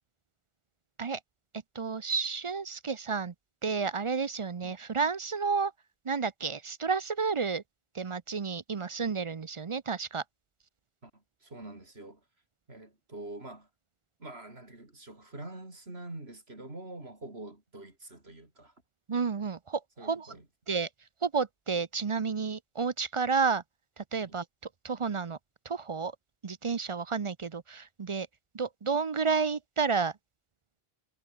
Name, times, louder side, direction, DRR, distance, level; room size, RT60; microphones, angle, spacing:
voice 1, 1.7-3.3 3.6-5.7 6.0-7.6 7.9-10.2 19.1-20.4 20.7-20.9 21.2-23.6 24.0-24.5 24.8-25.4 25.6-26.2 26.4-28.3 28.5-30.1, right 5 dB, 35° right, 0.6 m, -31 dB
voice 2, 11.0-12.2 12.7-13.7 14.2-18.7 20.0-20.4 24.2-24.3, right 2 dB, 80° right, 5.1 m, -45 dB
omnidirectional pair, 1.0 m